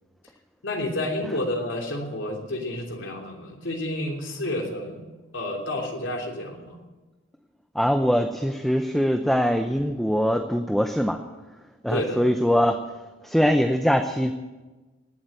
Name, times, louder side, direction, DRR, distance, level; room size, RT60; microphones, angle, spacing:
voice 1, 0.6-5.0 5.3-6.8 11.9-12.5, left 1 dB, 75° left, 1 dB, 3.2 m, -30 dB
voice 2, 7.7-11.2 11.8-12.8 13.2-14.3, equal, ahead, 6 dB, 0.6 m, -22 dB
19.0 x 8.0 x 9.1 m, 1.2 s
head